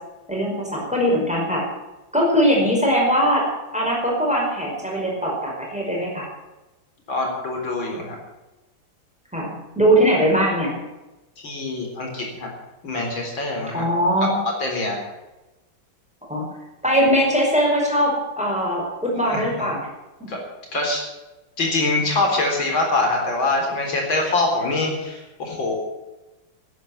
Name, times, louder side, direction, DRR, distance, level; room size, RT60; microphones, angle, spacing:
voice 1, 0.3-1.6 2.1-3.5 3.7-6.3 9.3-10.8 13.7-14.4 16.3-16.5 16.8-19.8 20.2-20.3, equal, 5° right, -2 dB, 5.2 m, -21 dB
voice 2, 7.1-8.2 11.4-12.5 12.8-13.8 14.6-15.0 19.3-19.4 20.3-20.4 20.7-21.0 21.6-25.8, left 2 dB, 80° left, 1 dB, 4.7 m, -24 dB
12.5 x 10.5 x 9.5 m, 1.0 s
omnidirectional pair, 2.1 m